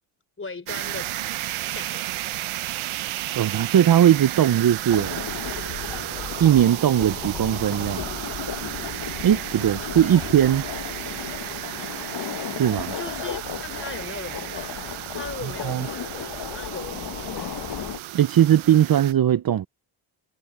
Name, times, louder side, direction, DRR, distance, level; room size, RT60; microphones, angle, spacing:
voice 1, 0.4-1.1 1.6-2.1 10.0-10.3 12.9-17.7, left 3 dB, 25° left, 4.5 m, -38 dB
sound 1, 0.7-19.1, right 15 dB, 90° right, 1.0 m, -33 dB
voice 2, 3.4-5.3 6.4-8.0 9.2-10.6 12.6-13.0 15.6-15.9 18.1-19.7, right 10 dB, 45° right, 0.7 m, -19 dB
sound 2, 4.9-18.0, left 9 dB, 55° left, 1.3 m, -35 dB
cardioid pair, 70°, 47 cm